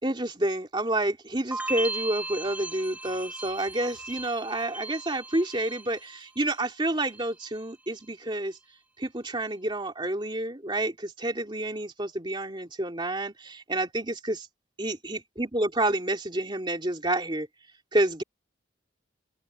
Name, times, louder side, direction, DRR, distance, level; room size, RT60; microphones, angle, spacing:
voice 1, 0.0-8.6 9.0-14.5 14.8-17.5 17.9-18.2, right 1 dB, 25° right, 2.7 m, -29 dB
sound 1, 1.5-6.5 6.8-7.5, right 2 dB, 10° right, 3.4 m, -37 dB
head